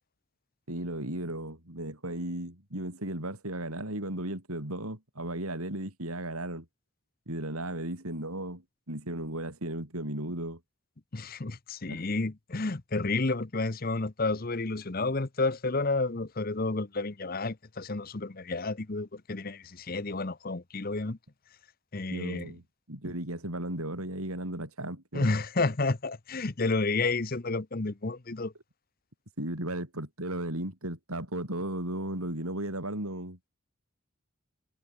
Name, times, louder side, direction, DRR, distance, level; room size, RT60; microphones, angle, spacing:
voice 1, 0.7-6.7 7.3-10.6 11.9-12.0 22.1-25.3 29.4-33.4, right 1 dB, 80° right, 7.3 m, -35 dB
voice 2, 11.1-21.2 21.9-22.5 23.0-23.1 25.1-28.5, left 3 dB, 40° left, 0.9 m, -31 dB
head